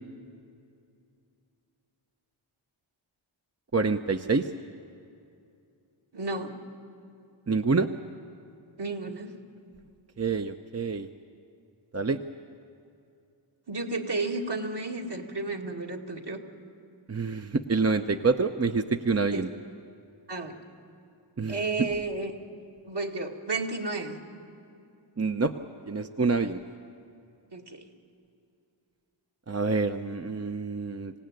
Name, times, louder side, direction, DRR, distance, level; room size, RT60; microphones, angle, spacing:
voice 1, 3.7-4.5 7.5-7.9 10.2-11.1 11.9-12.2 17.1-19.5 21.4-21.6 25.2-25.5 25.9-26.6 29.5-31.1, right 4 dB, 30° right, 6 dB, 0.7 m, -27 dB
voice 2, 6.1-6.5 8.8-9.3 13.7-16.4 19.3-19.4 20.3-20.5 21.5-22.3 22.8-24.2 27.5-27.9, right 3 dB, 55° right, 1 dB, 2.3 m, -32 dB
26.5 x 17.5 x 9.1 m, 2.6 s
wide cardioid pair, 50°, 48 cm